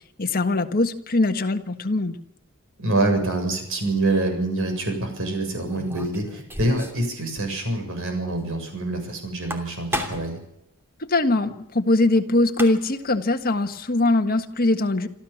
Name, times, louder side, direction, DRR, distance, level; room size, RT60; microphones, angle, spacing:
voice 1, 0.2-2.2 11.0-15.1, left 2 dB, 40° left, 6 dB, 1.6 m, -22 dB
voice 2, 2.8-10.4, right 2 dB, 65° right, 5 dB, 7.4 m, -26 dB
sound 1, 5.7-7.1 7.4-7.5 7.8-7.9 9.3-10.4 12.2-12.3 12.5-13.0, left 1 dB, 10° right, 2.8 m, -33 dB
27.5 x 13.5 x 7.3 m, 0.81 s
head